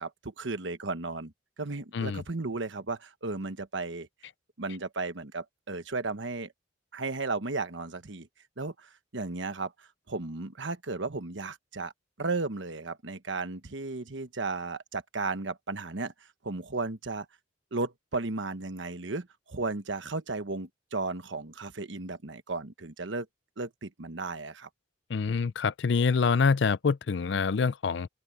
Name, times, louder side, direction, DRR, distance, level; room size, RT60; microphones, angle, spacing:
voice 1, 0.0-1.3 1.6-4.1 4.6-6.5 6.9-8.3 8.6-11.9 12.2-16.1 16.4-17.3 17.7-23.3 23.6-24.7, right 3 dB, 75° right, 1.2 m, -34 dB
voice 2, 25.1-28.1, left 5 dB, 65° left, 0.5 m, -26 dB
open air
head